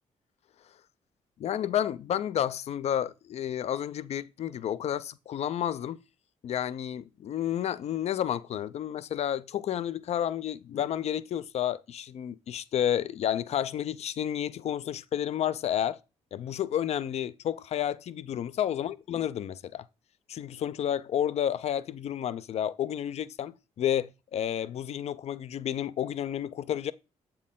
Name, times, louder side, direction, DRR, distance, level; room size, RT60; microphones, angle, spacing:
voice 1, 1.4-6.0 6.4-16.0 16.3-19.9 20.3-26.9, left 10 dB, 55° left, 0.4 m, -31 dB
7.4 x 4.4 x 3.6 m
cardioid pair, 75°, 13 cm